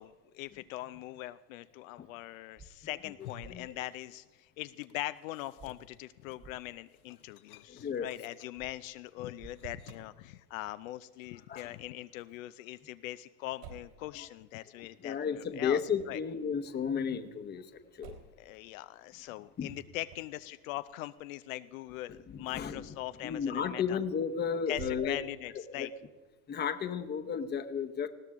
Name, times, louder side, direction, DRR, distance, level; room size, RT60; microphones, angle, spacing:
voice 1, 0.0-15.8 16.1-16.2 18.4-24.0 24.7-25.9, left 16 dB, 65° left, 13 dB, 0.6 m, -41 dB
sound 1, 2.6-2.7 3.4-3.5 5.6-5.7 6.4-6.5 8.6-8.7 9.4-9.5, right 4 dB, 20° right, 0.9 m, -51 dB
sound 2, 3.0-4.4 4.6-10.2, left 9 dB, 85° left, 1.0 m, -55 dB
voice 2, 7.7-8.1 9.2-9.3 11.3-11.7 14.1-14.3 14.8-18.2 19.6-19.7 22.3-22.9 23.2-25.2 25.7-25.9 26.5-28.1, left 7 dB, 25° left, 9 dB, 1.0 m, -34 dB
Motor vehicle (road), 9.4-10.0 13.6-14.0 15.9-16.3 18.0-18.4 20.0-20.4 24.6-25.5, right 6 dB, 65° right, 4.0 m, -48 dB
20.0 x 16.0 x 3.6 m, 1.2 s
supercardioid pair, 115°, 43 cm